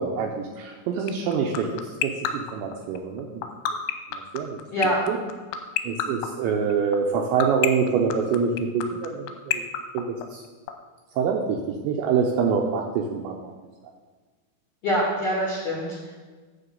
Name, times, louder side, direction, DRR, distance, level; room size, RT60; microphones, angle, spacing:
voice 1, 0.0-1.7 2.0-3.4 4.1-4.6 5.1-5.2 5.8-9.6 9.9-10.1 10.3-10.4 11.2-11.6 11.8-13.5, right 6 dB, 80° right, 1 dB, 2.7 m, -25 dB
sound 1, 1.1-10.7, left 14 dB, 85° left, 3.1 m, -25 dB
voice 2, 14.8-16.1, equal, 55° left, -5 dB, 1.7 m, -25 dB
10.0 x 7.6 x 5.3 m, 1.4 s
omnidirectional pair, 6.0 m